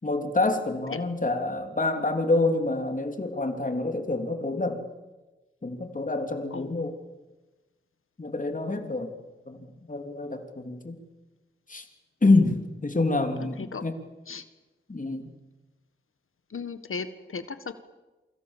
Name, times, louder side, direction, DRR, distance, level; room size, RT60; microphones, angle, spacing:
voice 1, 0.0-4.8 5.6-7.0 8.2-9.1 9.5-11.0 11.7-11.9 12.2-13.9 14.9-15.3, left 2 dB, 40° left, 6 dB, 3.3 m, -27 dB
voice 2, 6.5-6.9 8.7-8.9 13.6-13.8 14.3-14.4 16.5-17.7, left 5 dB, 80° left, 11 dB, 1.6 m, -36 dB
28.5 x 25.0 x 7.4 m, 1.1 s
wide cardioid pair, 80°, 21 cm